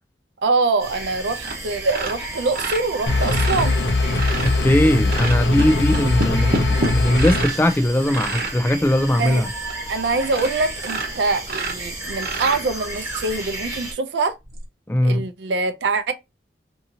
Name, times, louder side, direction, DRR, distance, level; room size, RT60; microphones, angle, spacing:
voice 1, 0.4-3.8 9.2-9.4 9.9-14.4 15.0-16.1, right 3 dB, 75° right, 0.5 m, -24 dB
sound 1, 0.8-13.9, right 2 dB, 20° right, 0.9 m, -33 dB
sound 2, 1.4-1.6 1.9-4.6 5.1-7.6 8.1-8.6 9.2-9.3 9.7-9.8 10.2-10.5 10.8-12.9 14.5-14.6, right 2 dB, 55° right, 0.9 m, -28 dB
sound 3, 3.1-7.5, left 2 dB, 75° left, 0.6 m, -21 dB
voice 2, 4.4-9.5 14.9-15.3, left 1 dB, 10° left, 0.4 m, -19 dB
2.7 x 2.7 x 2.7 m
head